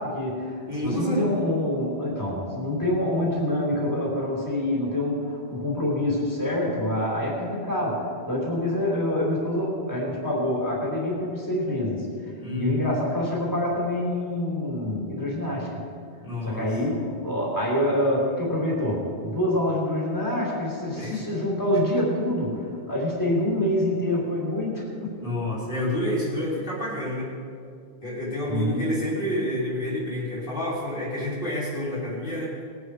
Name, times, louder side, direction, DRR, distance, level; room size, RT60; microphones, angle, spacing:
voice 1, 0.0-12.1 12.5-15.7 16.5-25.2 28.5-28.9, left 1 dB, 15° left, -4 dB, 3.6 m, -26 dB
voice 2, 0.7-1.3 12.4-12.8 16.2-16.7 21.0-21.2 25.2-27.3 28.0-32.6, left 1 dB, 55° left, -7 dB, 3.2 m, -29 dB
20.5 x 9.6 x 4.9 m, 2.3 s
omnidirectional pair, 1.1 m